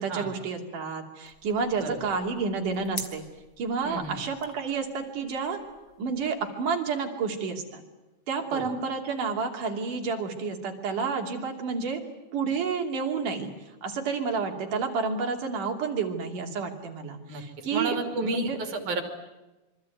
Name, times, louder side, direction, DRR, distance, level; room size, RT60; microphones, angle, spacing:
voice 1, 0.0-3.2 3.6-5.6 6.0-7.8 8.3-12.0 12.3-13.5 13.8-17.9 18.2-18.6, right 5 dB, 90° right, 3 dB, 4.4 m, -30 dB
sound 1, 1.2-6.3, left 5 dB, 45° left, 3.2 m, -47 dB
voice 2, 1.8-2.1 3.8-4.2 8.5-8.7 17.3-19.0, right 3 dB, 75° right, 5 dB, 4.3 m, -32 dB
26.0 x 25.0 x 9.2 m, 1.1 s
omnidirectional pair, 3.6 m